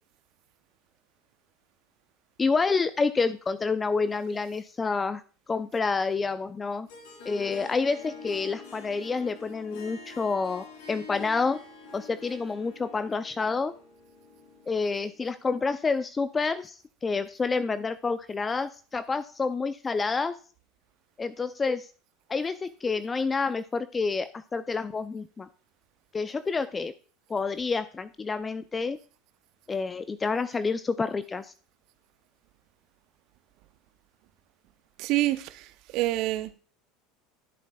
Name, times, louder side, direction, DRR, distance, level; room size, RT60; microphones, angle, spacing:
voice 1, 2.4-5.2 5.5-6.9 7.3-11.6 11.9-13.7 14.7-20.3 21.2-21.9 22.3-25.5 26.1-26.9 27.3-29.0 29.7-31.5, left 4 dB, 20° left, 0.4 m, -28 dB
Harp, 6.9-15.3, left 3 dB, 65° left, 2.7 m, -47 dB
voice 2, 35.0-36.5, right 16 dB, 55° right, 0.7 m, -27 dB
12.0 x 7.3 x 2.3 m
hypercardioid pair, 80°, 0 cm